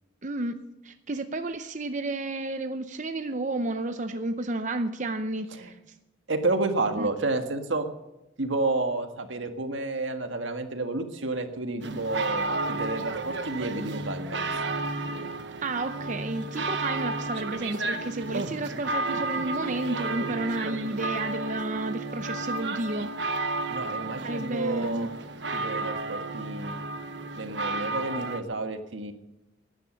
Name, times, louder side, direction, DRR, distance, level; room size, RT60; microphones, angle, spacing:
voice 1, 0.2-0.6 0.8-5.8 7.0-7.1 15.6-23.5 24.2-25.1, right 2 dB, 40° right, 8 dB, 0.7 m, -31 dB
voice 2, 6.3-7.9 8.4-14.6 23.7-25.1 25.5-26.7 27.3-29.1, right 2 dB, 80° right, 6 dB, 1.7 m, -30 dB
sound 1, 11.8-28.4, right 2 dB, 65° right, 1.2 m, -32 dB
17.5 x 11.0 x 6.4 m, 0.92 s
head